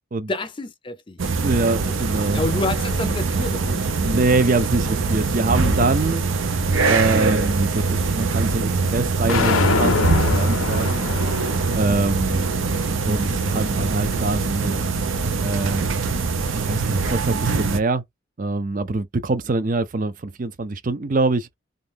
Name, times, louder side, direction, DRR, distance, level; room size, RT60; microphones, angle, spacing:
voice 1, 0.3-1.2 2.3-3.9 5.6-5.9, left 2 dB, 25° left, 0.4 m, -29 dB
sound 1, 1.2-17.8, right 4 dB, 75° right, 0.7 m, -23 dB
voice 2, 1.4-2.4 4.0-6.3 6.9-9.9 10.3-11.0 11.8-12.5 13.1-14.8 15.4-15.9 16.5-18.0 18.4-21.5, right 3 dB, 40° right, 0.5 m, -24 dB
sound 2, 9.3-15.4, left 4 dB, 85° left, 0.6 m, -27 dB
2.7 x 2.5 x 3.5 m
head